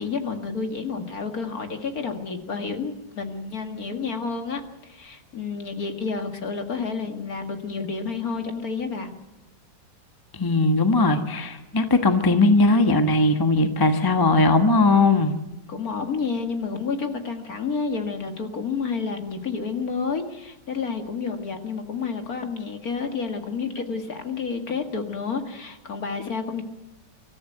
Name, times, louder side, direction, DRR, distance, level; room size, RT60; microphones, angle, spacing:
voice 1, 0.0-9.1 15.7-26.6, left 5 dB, 45° left, 6 dB, 2.3 m, -30 dB
voice 2, 10.3-15.3, left 2 dB, 15° left, 7 dB, 1.1 m, -19 dB
24.5 x 14.0 x 9.3 m, 0.99 s
omnidirectional pair, 2.2 m